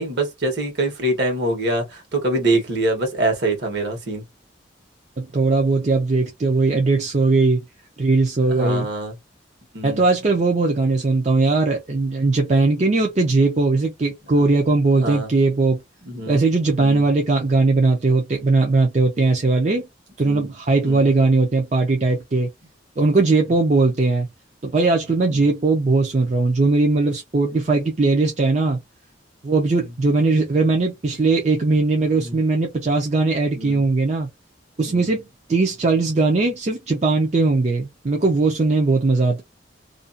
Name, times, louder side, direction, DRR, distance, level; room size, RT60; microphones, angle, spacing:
voice 1, 0.0-4.2 8.5-9.1 9.7-10.0 14.4-14.5 14.9-15.3 16.0-16.4 16.8-17.1 20.2-20.5 20.8-21.1 25.3-25.5 32.1-32.4 33.6-33.8 34.9-35.1, right 2 dB, 60° right, 1.1 m, -25 dB
voice 2, 5.2-7.6 8.0-8.9 9.8-15.8 16.3-19.9 20.2-22.5 23.0-24.3 24.6-28.8 29.4-34.3 34.8-39.4, right 3 dB, 40° right, 0.5 m, -19 dB
2.5 x 2.3 x 2.5 m
head